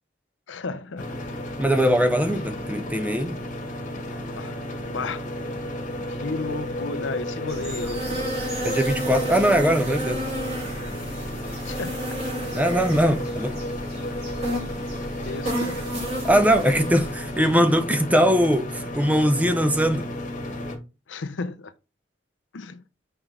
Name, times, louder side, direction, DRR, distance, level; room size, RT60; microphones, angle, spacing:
voice 1, 0.5-1.0 4.4-4.5 4.8-5.2 6.1-8.3 11.6-12.1 15.2-15.8 21.1-21.7 22.5-22.8, left 4 dB, 85° left, 0.6 m, -33 dB
sound 1, 1.0-20.8, left 1 dB, 45° left, 1.3 m, -33 dB
voice 2, 1.6-3.4 8.6-10.2 12.5-13.5 16.2-20.1, equal, 10° right, 0.7 m, -21 dB
sound 2, 7.5-17.4, right 1 dB, 35° right, 3.1 m, -32 dB
6.0 x 4.9 x 3.3 m
head